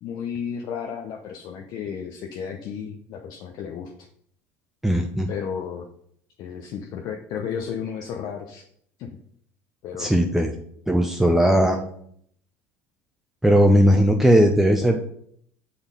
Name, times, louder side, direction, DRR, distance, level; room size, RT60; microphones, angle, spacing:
voice 1, 0.0-3.9 5.3-5.9 6.4-8.6 9.0-9.2 9.8-10.2 11.4-11.8, left 7 dB, 60° left, 3 dB, 0.8 m, -33 dB
voice 2, 4.8-5.3 10.0-10.5 10.9-11.8 13.4-15.1, equal, 5° right, 3 dB, 0.8 m, -18 dB
7.0 x 4.4 x 5.2 m, 0.66 s
hypercardioid pair, 75°, 8 cm